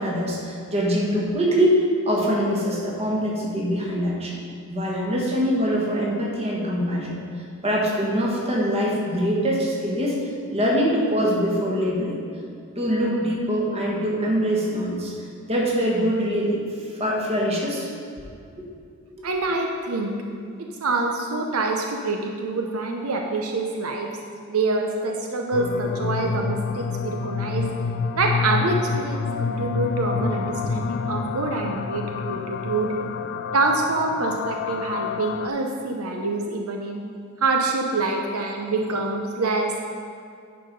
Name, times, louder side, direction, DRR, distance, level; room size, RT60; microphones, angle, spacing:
voice 1, 0.0-1.7 2.0-4.4 4.7-7.2 7.6-10.2 10.5-12.2 12.7-15.1 15.5-16.6 17.0-17.9, equal, 30° right, -3 dB, 1.6 m, -23 dB
voice 2, 19.2-20.1 20.8-24.1 24.5-27.7 28.1-32.9 33.5-37.0 37.4-39.8, right 3 dB, 80° right, 2 dB, 0.7 m, -26 dB
sound 1, 25.5-35.5, left 5 dB, 55° left, 0.3 m, -28 dB
10.0 x 4.7 x 5.3 m, 2.4 s
head